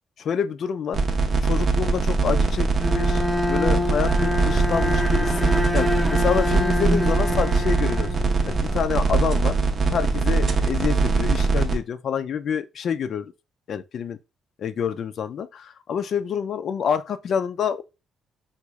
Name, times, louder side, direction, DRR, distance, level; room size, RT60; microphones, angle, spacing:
voice 1, 0.2-1.0 1.4-5.4 5.7-8.1 8.5-9.6 9.8-13.3 13.7-14.2 14.6-17.8, left 7 dB, 60° left, 0.3 m, -27 dB
sound 1, 0.9-11.8, right 4 dB, 50° right, 0.6 m, -22 dB
Bowed string instrument, 2.8-8.8, left 2 dB, 5° right, 0.7 m, -26 dB
sound 2, 3.9-10.3, right 6 dB, 85° right, 0.4 m, -36 dB
3.5 x 2.4 x 3.0 m
cardioid pair, 90°, 0 cm